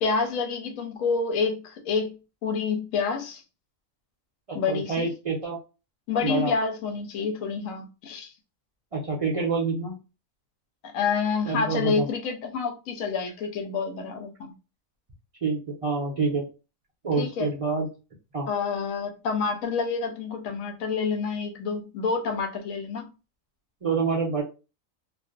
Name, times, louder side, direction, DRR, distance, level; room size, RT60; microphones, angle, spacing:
voice 1, 0.0-2.2 2.4-3.4 4.5-5.1 6.1-8.3 10.9-14.5 17.2-17.5 18.5-23.1, left 5 dB, 90° left, 1.0 m, -28 dB
voice 2, 4.5-5.6 6.2-6.5 8.9-10.0 11.5-12.0 15.4-16.4 17.0-17.9 18.3-18.5 23.8-24.4, right 4 dB, 65° right, 0.3 m, -27 dB
2.4 x 2.1 x 2.4 m
omnidirectional pair, 1.4 m